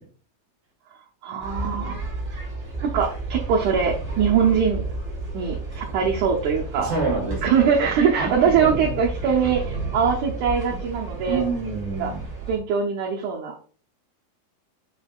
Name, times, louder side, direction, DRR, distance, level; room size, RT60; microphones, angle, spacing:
voice 1, 1.2-1.9 2.8-4.8 5.3-6.9 7.4-11.4 12.0-12.1 12.5-13.6, right 6 dB, 75° right, -1 dB, 1.9 m, -22 dB
sound 1, 1.4-12.6, right 3 dB, 20° right, 1.9 m, -32 dB
voice 2, 6.8-7.9 8.2-8.9 10.7-12.3, right 4 dB, 55° right, 0 dB, 2.6 m, -29 dB
7.5 x 5.3 x 2.4 m, 0.41 s
omnidirectional pair, 4.4 m